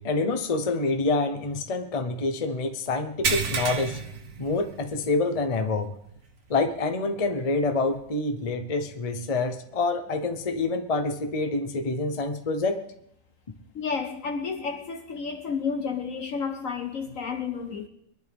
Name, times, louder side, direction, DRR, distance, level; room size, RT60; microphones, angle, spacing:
voice 1, 0.0-4.0 4.4-5.9 6.5-12.8, left 3 dB, 30° left, 0.7 m, -27 dB
sound 1, 3.2-5.1 5.5-5.7 6.2-6.3 7.9-8.0, right 5 dB, 55° right, 1.7 m, -30 dB
voice 2, 13.7-17.9, left 5 dB, 55° left, 1.0 m, -31 dB
23.0 x 11.0 x 3.6 m
omnidirectional pair, 2.0 m